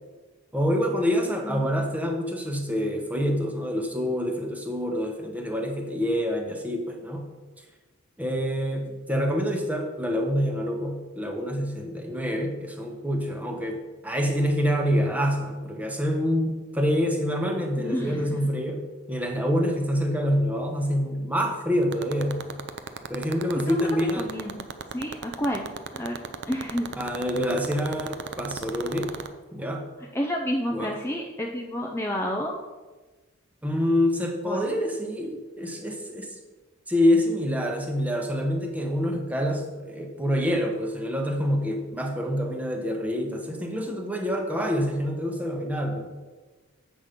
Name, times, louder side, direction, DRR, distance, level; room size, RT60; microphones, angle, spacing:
voice 1, 0.5-7.3 8.2-22.4 23.1-24.3 27.0-29.1 29.5-29.9 30.7-30.9 33.6-36.4 36.9-46.1, equal, 5° right, 2 dB, 1.0 m, -26 dB
voice 2, 17.8-18.4 23.7-25.7 25.9-26.2 26.5-26.9 30.1-32.5 34.4-34.7, equal, 10° left, 0 dB, 0.6 m, -30 dB
sound 1, 21.8-29.3, right 6 dB, 55° right, 0.6 m, -32 dB
8.1 x 6.1 x 5.1 m, 1.3 s
head